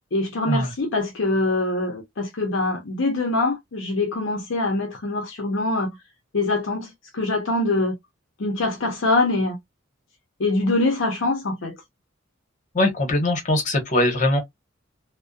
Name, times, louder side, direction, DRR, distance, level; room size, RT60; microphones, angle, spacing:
voice 1, 0.1-6.0 6.3-7.9 8.4-9.6 10.4-11.8, left 2 dB, 65° left, 0.6 m, -24 dB
voice 2, 12.7-14.4, left 1 dB, 40° left, 0.9 m, -21 dB
2.6 x 2.1 x 2.3 m
head